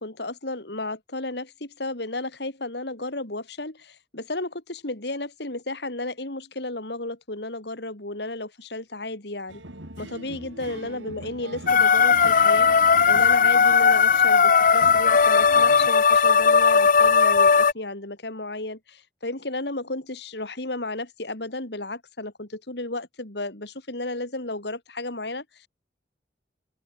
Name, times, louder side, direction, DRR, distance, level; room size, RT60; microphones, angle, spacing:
voice 1, 0.0-9.6 10.0-12.7 13.1-25.7, left 2 dB, 65° left, 3.1 m, -33 dB
sound 1, 9.5-15.9, right 1 dB, 90° right, 5.3 m, -41 dB
sound 2, 11.7-17.7, left 6 dB, 45° left, 0.6 m, -17 dB
open air
head